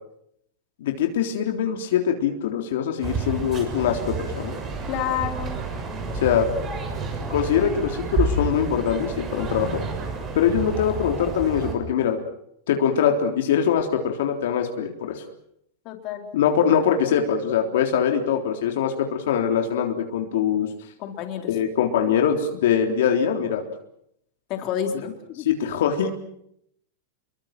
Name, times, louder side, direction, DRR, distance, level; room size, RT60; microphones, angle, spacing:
voice 1, 0.8-4.5 6.2-6.5 7.3-9.8 10.3-12.2 12.7-15.2 16.3-20.7 21.5-23.6 25.4-26.1, left 8 dB, 75° left, 3 dB, 3.6 m, -23 dB
sound 1, 3.0-11.7, right 3 dB, 25° right, 6.6 m, -30 dB
voice 2, 4.9-5.6 15.8-16.3 21.0-21.5 24.5-25.5, left 9 dB, 40° left, 4 dB, 4.2 m, -29 dB
28.5 x 23.5 x 6.1 m, 0.73 s
supercardioid pair, 145°, 0 cm